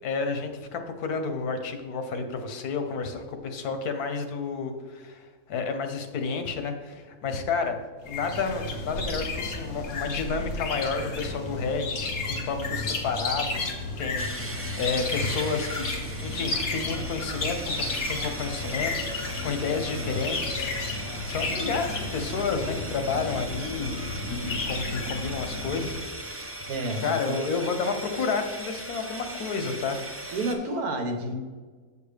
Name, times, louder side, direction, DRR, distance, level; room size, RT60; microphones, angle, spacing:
voice 1, 0.0-7.8 8.0-15.9 16.2-24.0 24.3-26.4 27.0-30.0, left 4 dB, 90° left, 7 dB, 1.4 m, -31 dB
sound 1, 8.1-26.1, left 3 dB, 60° left, 1.3 m, -32 dB
sound 2, 14.2-30.5, right 1 dB, 20° right, 0.4 m, -38 dB
voice 2, 26.7-27.5 30.3-31.3, right 2 dB, 80° right, 5 dB, 1.5 m, -30 dB
7.1 x 7.1 x 3.4 m, 1.5 s
omnidirectional pair, 1.6 m